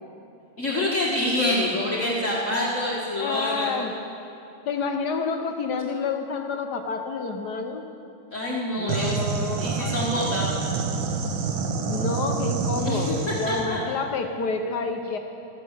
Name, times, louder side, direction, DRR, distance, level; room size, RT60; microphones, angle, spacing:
voice 1, 0.6-3.7 8.3-9.1 9.6-10.5 12.8-13.8, left 1 dB, 40° left, -5 dB, 1.7 m, -26 dB
voice 2, 3.2-3.9 4.7-7.8 8.8-10.4 11.9-15.2, left 4 dB, 65° left, 5 dB, 1.1 m, -29 dB
sound 1, 8.9-13.7, right 5 dB, 70° right, 1.7 m, -27 dB
14.0 x 10.5 x 7.2 m, 2.8 s
omnidirectional pair, 2.2 m